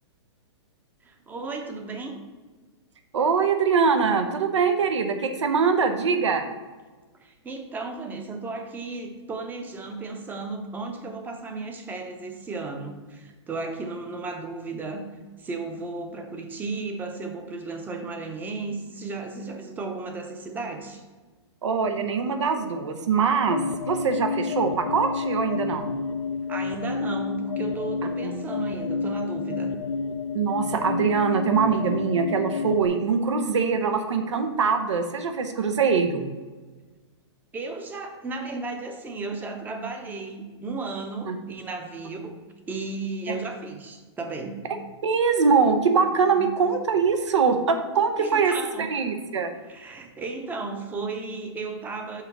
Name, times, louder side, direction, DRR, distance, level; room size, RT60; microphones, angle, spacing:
voice 1, 1.0-2.2 7.2-15.0 15.4-21.0 26.5-29.7 37.5-42.4 42.7-44.6 46.3-46.5 48.2-49.0 49.6-52.2, right 3 dB, 10° right, 5 dB, 0.7 m, -34 dB
voice 2, 3.1-6.5 21.6-26.0 28.2-28.3 30.3-36.3 41.3-41.4 43.3-43.4 45.0-48.5 48.8-49.5, right 5 dB, 85° right, 7 dB, 0.8 m, -23 dB
sound 1, 23.4-32.9, left 5 dB, 90° left, 0.5 m, -30 dB
5.7 x 3.9 x 5.9 m, 1.3 s
hypercardioid pair, 145°, 15 cm